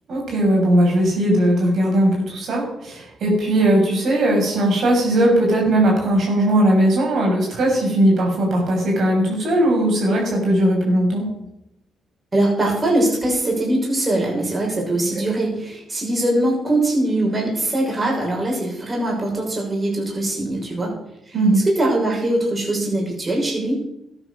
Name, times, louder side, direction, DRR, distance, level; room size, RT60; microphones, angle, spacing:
voice 1, 0.1-11.3 21.3-21.6, right 1 dB, 60° right, -1 dB, 6.3 m, -18 dB
voice 2, 12.3-21.0 21.3-23.8, right 1 dB, 25° right, -2 dB, 6.3 m, -22 dB
13.5 x 9.8 x 6.7 m, 0.82 s
cardioid pair, 90°, 0 cm